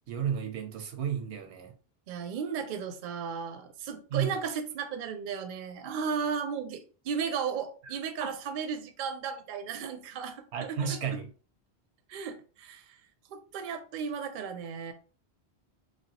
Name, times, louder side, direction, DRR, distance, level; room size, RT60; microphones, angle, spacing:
voice 1, 0.1-1.7 4.1-4.4 8.2-8.3 10.5-11.3, right 7 dB, 85° right, 0.9 m, -32 dB
voice 2, 2.1-11.0 12.1-13.0 13.3-14.9, right 6 dB, 60° right, 0.6 m, -35 dB
3.2 x 2.2 x 2.8 m
omnidirectional pair, 1.1 m